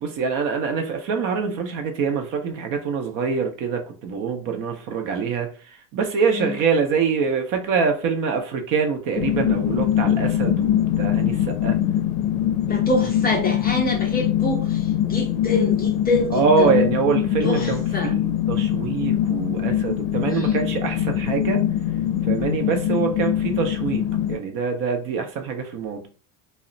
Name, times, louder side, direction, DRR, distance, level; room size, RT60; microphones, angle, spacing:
voice 1, 0.0-5.5 5.9-11.8 16.3-21.6 22.3-24.0 24.3-26.1, right 5 dB, 45° right, 0.6 m, -24 dB
sound 1, 9.2-24.4, left 11 dB, 75° left, 0.5 m, -23 dB
voice 2, 12.7-16.8 17.4-18.1 20.3-20.5, left 2 dB, 25° left, 0.4 m, -26 dB
2.3 x 2.1 x 3.7 m
cardioid pair, 140°, 43 cm